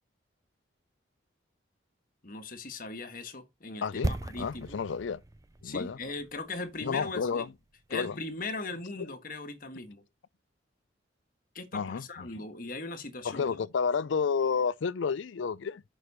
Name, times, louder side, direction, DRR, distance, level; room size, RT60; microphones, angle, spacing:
voice 1, 2.2-4.8 5.6-7.4 7.9-10.0 11.5-13.5, left 3 dB, 45° left, 1.4 m, -39 dB
voice 2, 3.8-5.2 5.6-6.0 6.8-7.5 7.9-8.2 11.7-12.3 13.2-15.8, left 5 dB, 75° left, 0.4 m, -31 dB
sound 1, 4.0-8.0 8.2-8.3, right 1 dB, 15° right, 0.4 m, -38 dB
6.7 x 6.1 x 4.1 m
head